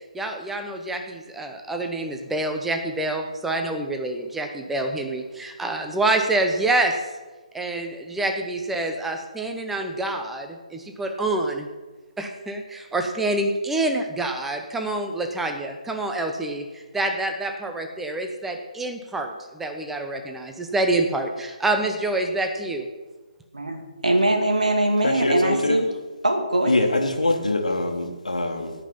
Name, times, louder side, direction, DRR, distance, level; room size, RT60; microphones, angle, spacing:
voice 1, 0.1-7.0 7.5-11.7 12.2-22.9, right 2 dB, 5° right, 0.9 m, -27 dB
voice 2, 23.5-25.9 26.2-27.0, right 1 dB, 75° right, 2.2 m, -22 dB
voice 3, 25.0-25.8 26.7-28.7, left 2 dB, 75° left, 1.5 m, -23 dB
17.0 x 5.7 x 5.6 m
figure-of-eight pair, 145°, 4 cm